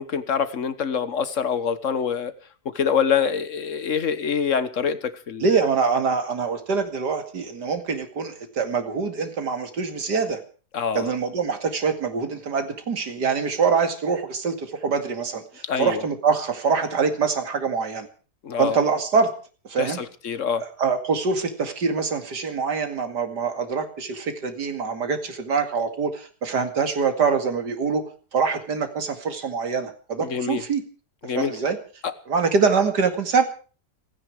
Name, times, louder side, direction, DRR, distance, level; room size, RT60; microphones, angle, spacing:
voice 1, 0.0-2.3 2.7-5.7 10.7-11.1 15.7-16.0 18.4-18.8 19.8-20.6 30.2-30.6 31.2-31.5 32.0-32.1, left 7 dB, 50° left, 1.5 m, -25 dB
voice 2, 5.4-10.4 10.9-18.1 18.6-19.3 19.7-20.0 20.6-28.0 28.3-30.8 31.3-31.8 32.3-33.4, right 5 dB, 85° right, 2.9 m, -24 dB
30.0 x 10.0 x 4.8 m
omnidirectional pair, 1.7 m